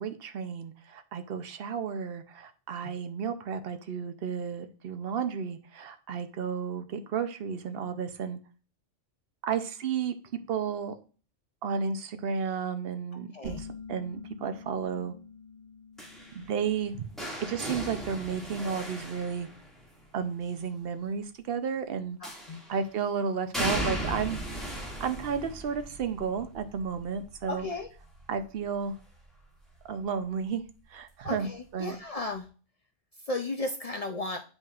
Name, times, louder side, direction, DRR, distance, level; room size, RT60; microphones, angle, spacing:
voice 1, 0.0-8.4 9.4-10.1 10.5-10.9 11.6-15.1 16.3-17.1 17.4-19.5 20.1-22.2 22.7-24.4 25.0-27.7 28.3-28.9 29.8-30.6 30.9-32.0, right 6 dB, 55° right, 8 dB, 0.8 m, -32 dB
sound 1, 13.4-18.8, left 4 dB, 20° right, 2.9 m, -48 dB
sound 2, 16.0-20.0 22.2-22.8 23.5-29.3 29.7-30.1 31.3-31.4, right 1 dB, ahead, 2.0 m, -37 dB
voice 2, 22.2-22.6 27.5-27.9 31.2-32.5 33.3-34.4, left 2 dB, 65° left, 5 dB, 0.3 m, -34 dB
8.6 x 5.3 x 2.4 m, 0.38 s
omnidirectional pair, 1.3 m